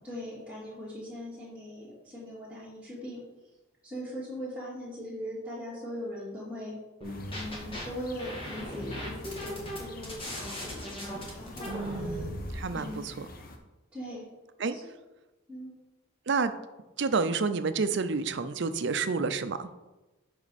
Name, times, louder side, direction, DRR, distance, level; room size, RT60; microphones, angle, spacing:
voice 1, 0.0-3.2 3.8-6.7 7.3-10.9 11.4-12.3 12.7-13.0 13.9-14.3 14.7-14.8 15.5-15.7, equal, 5° right, -13 dB, 2.6 m, -40 dB
sound 1, 7.0-13.6, left 2 dB, 45° left, 0.9 m, -47 dB
sound 2, 7.0-7.8 8.2-12.6, equal, 25° left, 1.7 m, -38 dB
voice 2, 11.7-13.3 14.6-14.8 16.3-16.5 17.0-19.7, right 4 dB, 55° right, 11 dB, 0.5 m, -29 dB
7.7 x 6.1 x 4.2 m, 1.1 s
head